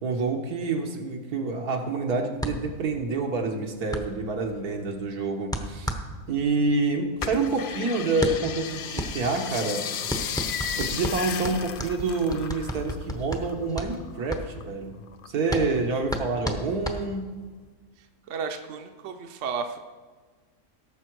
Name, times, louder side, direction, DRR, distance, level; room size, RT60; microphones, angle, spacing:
voice 1, 0.0-5.9 6.3-9.9 10.8-15.0 15.3-17.3, right 3 dB, 80° right, 3 dB, 1.8 m, -27 dB
sound 1, 2.4-17.5, equal, 5° left, 0.6 m, -34 dB
sound 2, 7.2-13.1 13.3-14.6 15.1-15.9 16.4-16.5, left 8 dB, 70° left, 0.5 m, -34 dB
voice 2, 18.0-19.8, right 5 dB, 60° right, 6 dB, 1.0 m, -33 dB
17.5 x 6.9 x 4.6 m, 1.4 s
omnidirectional pair, 1.6 m